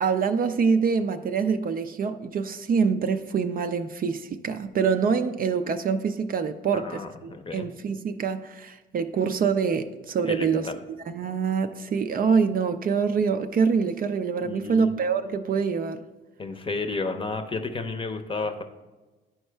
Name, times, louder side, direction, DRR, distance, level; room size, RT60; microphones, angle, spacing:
voice 1, 0.0-10.7 11.1-16.0, right 5 dB, 45° right, 8 dB, 0.5 m, -25 dB
voice 2, 6.7-7.7 10.2-10.8 14.4-14.9 16.4-18.6, left 3 dB, 25° left, 7 dB, 0.7 m, -32 dB
11.0 x 4.4 x 3.3 m, 1.2 s
cardioid pair, 90°, 20 cm